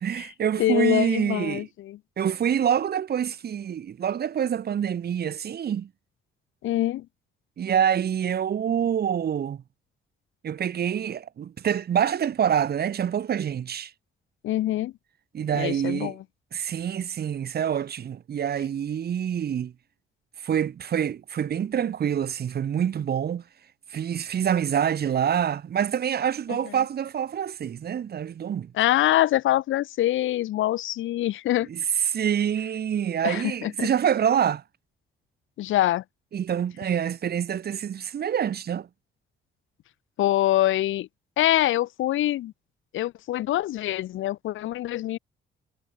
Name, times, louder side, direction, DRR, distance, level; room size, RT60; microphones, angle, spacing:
voice 1, 0.0-1.6 2.2-5.9 7.6-9.6 10.4-13.9 15.3-16.1 16.5-19.7 20.4-23.4 23.9-28.7 32.1-34.6 36.3-38.9, right 9 dB, 50° right, 1.4 m, -26 dB
voice 2, 0.6-2.0 6.6-7.1 14.4-15.0 15.5-16.2 26.5-26.8 28.7-31.7 33.2-33.9 35.6-36.0 40.2-41.1 41.4-42.5 42.9-45.2, left 14 dB, 80° left, 1.3 m, -25 dB
cardioid pair, 90°, 20 cm